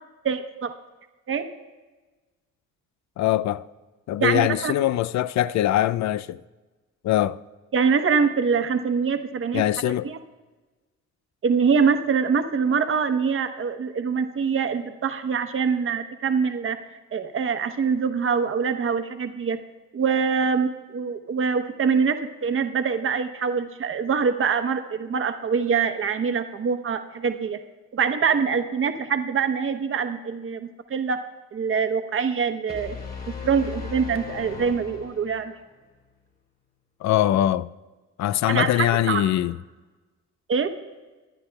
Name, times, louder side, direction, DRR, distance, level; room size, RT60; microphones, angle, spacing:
voice 1, 0.2-0.7 1.3-1.4 4.2-4.7 7.7-9.6 10.0-10.2 11.4-16.8 17.1-19.6 19.9-27.6 27.9-31.2 31.5-33.0 33.3-35.5 38.5-39.2 40.5-40.7, right 6 dB, 45° right, 1.0 m, -24 dB
voice 2, 3.2-3.7 4.1-6.4 7.0-7.4 9.5-10.1 37.0-37.7 38.2-39.6, left 13 dB, 65° left, 0.4 m, -22 dB
sound 1, 32.7-35.6, left 5 dB, 30° left, 2.4 m, -37 dB
21.5 x 9.8 x 2.3 m
cardioid pair, 90°, 30 cm